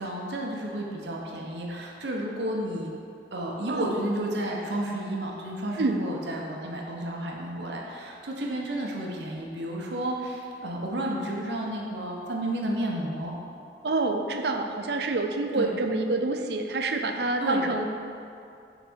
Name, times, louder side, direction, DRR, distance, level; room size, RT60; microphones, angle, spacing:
voice 1, 0.0-2.9 3.3-13.3 15.5-15.7 17.4-17.6, right 1 dB, 85° right, -1 dB, 1.1 m, -32 dB
voice 2, 13.8-17.9, right 3 dB, 70° right, 5 dB, 0.5 m, -27 dB
5.9 x 4.1 x 6.2 m, 2.6 s
head